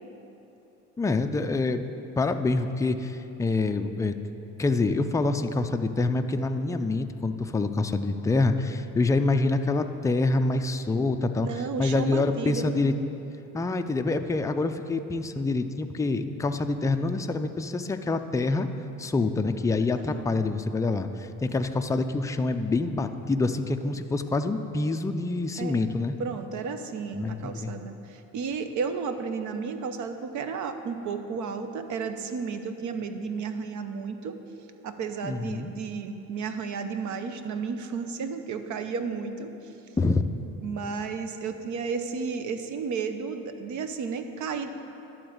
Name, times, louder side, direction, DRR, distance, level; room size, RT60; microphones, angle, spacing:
voice 1, 1.0-1.9 2.2-4.1 4.6-11.5 11.8-12.9 13.5-18.7 19.0-26.1 27.1-27.7 35.2-35.7 40.0-40.2, left 3 dB, 10° left, 7 dB, 0.4 m, -26 dB
voice 2, 11.4-12.7 20.0-20.4 25.6-25.9 26.2-34.4 34.8-39.6 40.6-44.7, right 5 dB, 60° right, 8 dB, 0.8 m, -33 dB
11.5 x 4.0 x 7.8 m, 3.0 s
cardioid pair, 95°, 34 cm